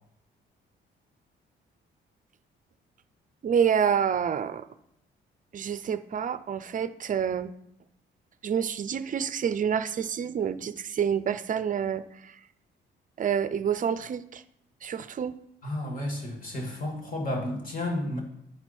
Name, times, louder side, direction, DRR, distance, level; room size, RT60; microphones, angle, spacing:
voice 1, 3.4-4.7 5.5-7.5 8.4-12.4 13.2-14.4 14.8-15.4, right 8 dB, 40° right, 13 dB, 0.5 m, -28 dB
voice 2, 15.6-18.2, left 1 dB, 45° left, 1 dB, 2.3 m, -32 dB
11.5 x 4.4 x 4.3 m, 0.77 s
cardioid pair, 90°, 20 cm